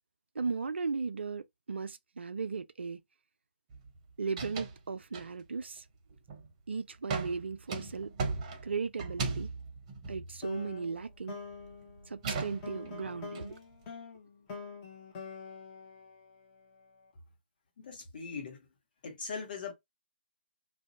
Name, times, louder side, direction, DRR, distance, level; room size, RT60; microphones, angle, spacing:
voice 1, 0.4-3.0 4.2-5.8 6.7-8.1 8.6-9.5 10.1-11.4 12.1-13.6, right 4 dB, 70° right, 0.3 m, -36 dB
sound 1, 3.7-4.0 4.2-4.8 5.1-5.6 6.1-6.5 7.1-11.1 11.4-13.5, right 4 dB, 30° right, 0.7 m, -38 dB
sound 2, 10.4-16.8, left 5 dB, 25° left, 0.8 m, -46 dB
voice 2, 17.8-18.6 19.0-19.7, left 5 dB, 50° left, 1.0 m, -40 dB
2.5 x 2.1 x 2.6 m
figure-of-eight pair, 140°, 6 cm